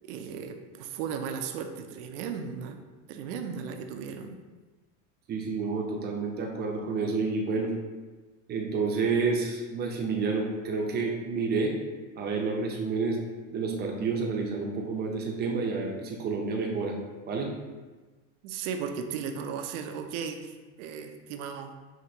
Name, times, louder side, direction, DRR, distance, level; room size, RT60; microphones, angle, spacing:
voice 1, 0.0-2.8 3.1-4.4 18.4-21.7, right 6 dB, 70° right, 6 dB, 0.6 m, -36 dB
voice 2, 5.3-7.7 8.5-11.7 12.1-13.2 13.5-17.0 17.3-17.5, right 4 dB, 25° right, 0 dB, 0.6 m, -29 dB
6.0 x 2.8 x 2.8 m, 1.3 s
supercardioid pair, 135°, 38 cm